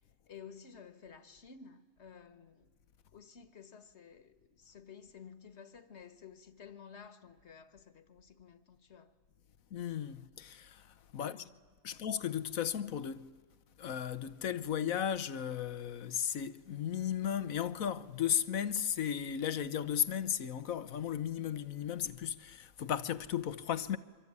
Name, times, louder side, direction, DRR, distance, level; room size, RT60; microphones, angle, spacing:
voice 1, 0.3-2.7 3.1-9.1 11.2-11.6 11.9-12.1, left 6 dB, 55° left, 1.8 m, -53 dB
voice 2, 9.7-11.4 11.8-13.2 13.8-24.0, left 9 dB, 80° left, 1.4 m, -35 dB
24.5 x 24.5 x 9.7 m
omnidirectional pair, 1.4 m